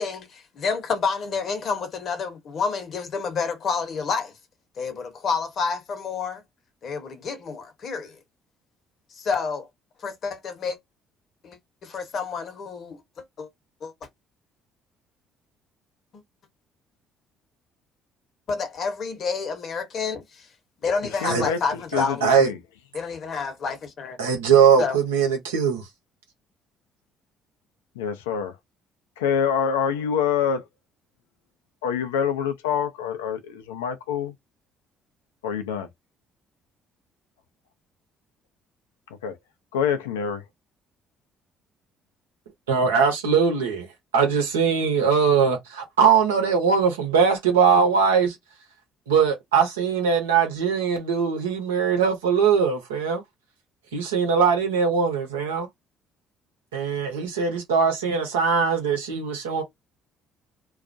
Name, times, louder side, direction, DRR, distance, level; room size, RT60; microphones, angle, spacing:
voice 1, 0.0-4.3 4.8-6.4 6.8-8.2 9.1-9.7 10.0-10.8 11.4-13.5 13.8-13.9 16.1-16.2 18.5-20.5 20.8-22.2 22.9-24.2 24.8-25.0, left 5 dB, 55° left, 0.9 m, -29 dB
voice 2, 21.2-22.6 28.0-28.6 29.2-30.7 31.8-34.3 35.4-35.9 39.2-39.4 39.7-40.4, left 7 dB, 80° left, 0.4 m, -26 dB
voice 3, 21.9-22.5 24.2-25.8 42.7-43.9 44.1-48.4 49.1-53.2 53.9-55.7 56.7-59.6, right 6 dB, 85° right, 0.8 m, -21 dB
2.3 x 2.0 x 2.5 m
hypercardioid pair, 50°, 0 cm